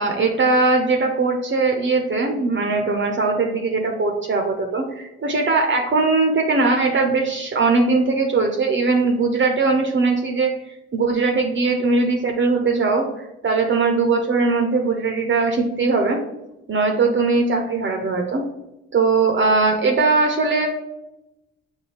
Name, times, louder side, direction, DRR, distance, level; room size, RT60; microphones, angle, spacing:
voice 1, 0.0-10.5 10.9-16.2 16.7-18.4 18.9-20.7, right 3 dB, 35° right, 2 dB, 0.7 m, -20 dB
6.2 x 2.2 x 3.2 m, 0.93 s
hypercardioid pair, 40°, 32 cm